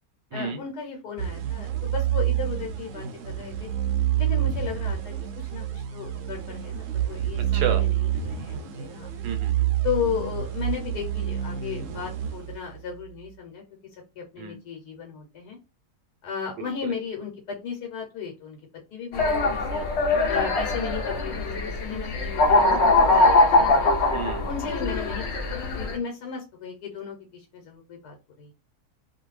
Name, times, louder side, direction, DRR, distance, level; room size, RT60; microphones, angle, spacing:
voice 1, 0.3-3.7 4.2-9.1 9.8-13.6 14.2-15.6 16.2-18.6 18.9-19.8 20.3-22.8 23.1-23.9 24.4-25.3 25.5-28.5, left 7 dB, 80° left, 1.3 m, -35 dB
sound 1, 1.2-13.0, right 11 dB, 70° right, 0.8 m, -28 dB
voice 2, 9.2-9.7 14.4-14.6 16.6-16.9 24.1-24.5, right 7 dB, 90° right, 1.2 m, -31 dB
sound 2, 19.1-25.9, left 2 dB, 55° left, 0.8 m, -22 dB
2.6 x 2.4 x 3.1 m
omnidirectional pair, 1.7 m